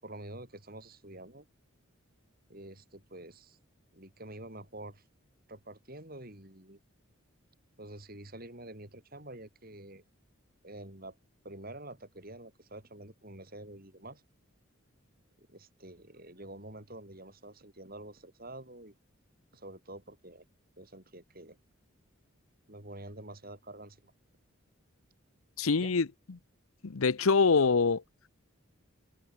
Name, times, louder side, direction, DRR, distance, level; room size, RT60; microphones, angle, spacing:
voice 1, 0.0-1.4 2.5-3.6 3.9-5.0 5.5-6.8 7.8-10.0 10.6-11.2 11.4-14.2 15.4-18.9 19.5-20.4 20.8-21.6 22.7-24.1 25.7-26.0, right 1 dB, 45° right, 6.7 m, -47 dB
voice 2, 25.6-26.1 26.8-28.0, left 4 dB, 85° left, 0.8 m, -24 dB
head